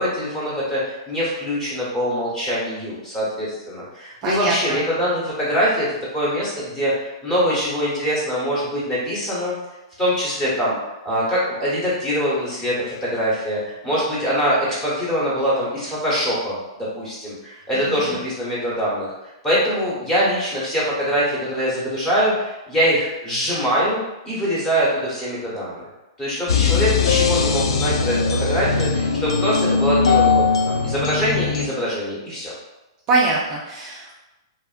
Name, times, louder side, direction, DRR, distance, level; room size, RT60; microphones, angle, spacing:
voice 1, 0.0-5.9 6.1-9.5 10.0-10.8 11.0-19.1 19.4-24.0 24.2-25.8 26.2-32.5, equal, 10° left, -7 dB, 1.0 m, -23 dB
voice 2, 4.2-4.8 17.7-17.9 33.1-34.1, right 3 dB, 25° right, -4 dB, 0.4 m, -22 dB
sound 1, 26.5-31.7, left 5 dB, 80° left, 0.3 m, -20 dB
2.9 x 2.4 x 2.4 m, 0.98 s
hypercardioid pair, 155°, 3 cm